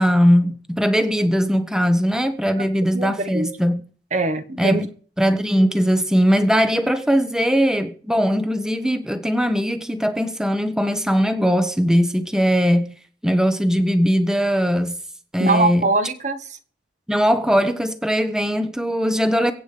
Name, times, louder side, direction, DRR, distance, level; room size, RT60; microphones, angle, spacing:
voice 1, 0.0-3.8 4.6-4.9 5.2-12.9 13.2-15.0 15.3-15.9 17.1-19.5, equal, 5° right, 1.1 m, -20 dB
voice 2, 2.9-3.5 4.1-4.8 15.4-16.4, right 2 dB, 40° right, 1.4 m, -22 dB
23.0 x 8.8 x 5.1 m
head